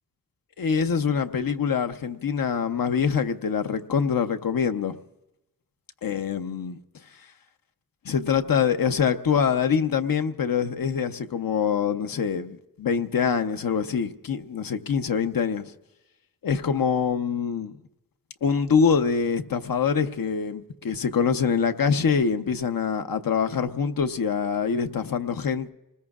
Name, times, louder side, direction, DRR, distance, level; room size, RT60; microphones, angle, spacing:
voice 1, 0.6-5.0 6.0-6.8 8.0-15.7 16.4-17.7 18.4-25.7, left 6 dB, 85° left, 0.8 m, -24 dB
29.0 x 20.0 x 2.4 m
wide cardioid pair, 95°, 34 cm